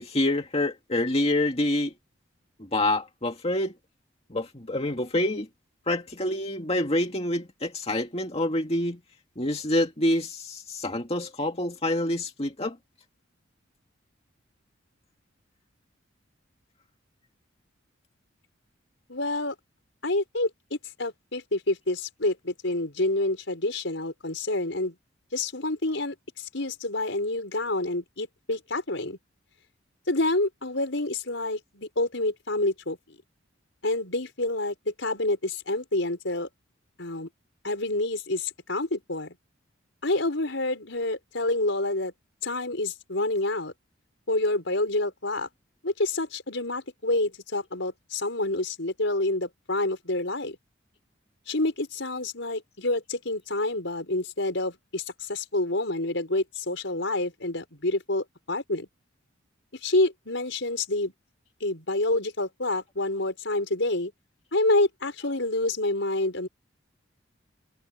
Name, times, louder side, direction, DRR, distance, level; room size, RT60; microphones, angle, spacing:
voice 1, 0.0-1.9 2.6-3.8 4.3-5.5 5.9-9.0 9.4-12.8, left 1 dB, 30° left, 2.2 m, -27 dB
voice 2, 19.1-19.5 20.0-24.9 25.3-29.2 30.1-33.2 33.8-36.5 37.0-37.3 37.6-39.3 40.0-42.1 42.4-43.7 44.3-45.5 45.8-50.6 51.5-58.9 59.7-61.1 61.6-64.1 64.5-66.5, left 2 dB, 70° left, 5.1 m, -28 dB
head